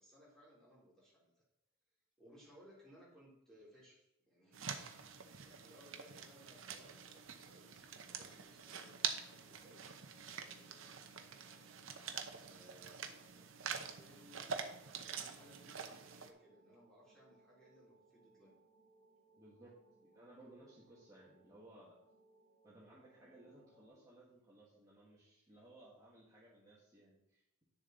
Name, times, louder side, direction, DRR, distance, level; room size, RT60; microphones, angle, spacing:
voice 1, 0.0-1.4 2.2-4.7 5.4-8.9 9.3-10.9 12.4-18.6, equal, ahead, -7 dB, 3.4 m, -63 dB
sound 1, 4.5-16.3, right 7 dB, 65° right, 0.8 m, -46 dB
sound 2, 8.6-23.9, right 1 dB, 30° left, 4.0 m, -70 dB
voice 2, 19.4-19.7 20.0-22.0 22.6-27.6, right 1 dB, 15° right, -9 dB, 1.9 m, -60 dB
10.0 x 6.9 x 4.0 m, 0.80 s
head